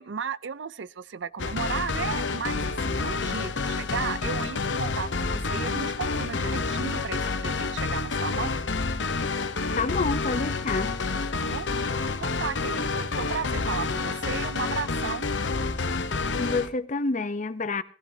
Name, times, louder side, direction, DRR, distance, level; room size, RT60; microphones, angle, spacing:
voice 1, 0.0-8.6 11.3-11.7 12.2-15.3, right 6 dB, 80° right, 0.6 m, -34 dB
sound 1, 1.4-16.7, left 4 dB, 80° left, 0.8 m, -29 dB
voice 2, 9.8-10.9 16.4-17.8, left 3 dB, 45° left, 0.7 m, -28 dB
18.5 x 16.0 x 2.8 m
head